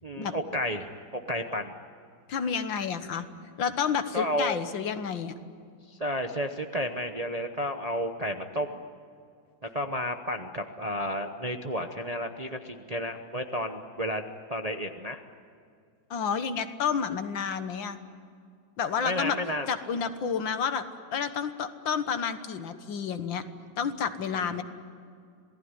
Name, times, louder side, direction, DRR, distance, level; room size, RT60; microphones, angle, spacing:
voice 1, 0.0-1.7 4.1-4.6 5.9-8.8 9.6-15.2 19.0-19.7 24.3-24.6, equal, 30° right, 5 dB, 0.7 m, -32 dB
voice 2, 2.3-3.3 3.6-5.3 16.1-18.0 18.8-19.4 19.7-20.8 21.1-23.4 23.8-24.6, left 6 dB, 75° left, 9 dB, 2.0 m, -30 dB
27.0 x 18.0 x 9.7 m, 2.4 s
omnidirectional pair, 2.1 m